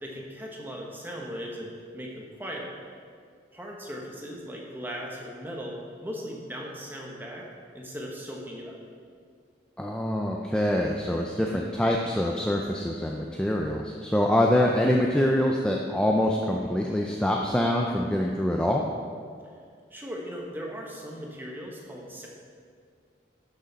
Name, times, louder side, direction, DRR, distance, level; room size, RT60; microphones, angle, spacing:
voice 1, 0.0-2.8 3.5-7.5 7.7-8.8 19.9-22.3, equal, 10° right, -2 dB, 1.2 m, -38 dB
voice 2, 9.8-18.8, left 1 dB, 5° left, 0 dB, 0.4 m, -25 dB
12.0 x 6.5 x 4.1 m, 2.1 s
head